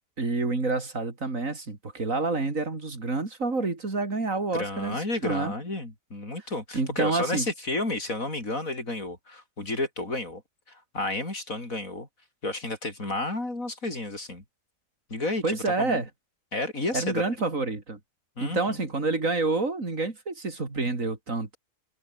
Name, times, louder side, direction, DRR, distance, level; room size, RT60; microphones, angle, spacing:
voice 1, 0.2-5.5 6.7-7.5 15.4-16.1 16.9-18.0 18.4-21.6, right 3 dB, 75° right, 4.0 m, -28 dB
voice 2, 4.5-10.4 10.7-12.1 12.4-14.4 15.1-16.0 16.5-17.2 18.4-18.8, left 2 dB, 85° left, 6.5 m, -31 dB
omnidirectional pair, 1.4 m